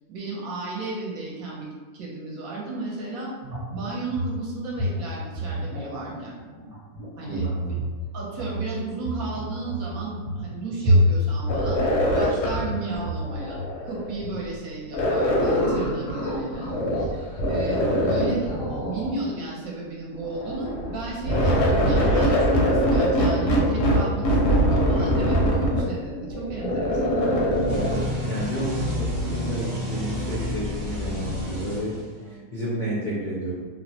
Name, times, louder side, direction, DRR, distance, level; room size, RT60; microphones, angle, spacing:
voice 1, 0.1-1.7 1.9-3.3 3.7-6.4 7.2-7.7 8.1-11.8 12.1-17.1 17.5-27.2, right 3 dB, 70° right, -4 dB, 1.0 m, -33 dB
sound 1, 3.4-14.4, equal, 30° right, 0.9 m, -28 dB
sound 2, 11.5-14.3 14.9-17.1 17.4-19.2 20.2-28.0, equal, 85° left, 1.1 m, -23 dB
Large Alien Machine Call, 27.5-32.4, left 1 dB, 45° right, 0.4 m, -30 dB
voice 2, 28.2-31.9 32.3-33.5, right 1 dB, 65° left, -8 dB, 0.4 m, -31 dB
2.8 x 2.0 x 2.7 m, 1.4 s
omnidirectional pair, 1.7 m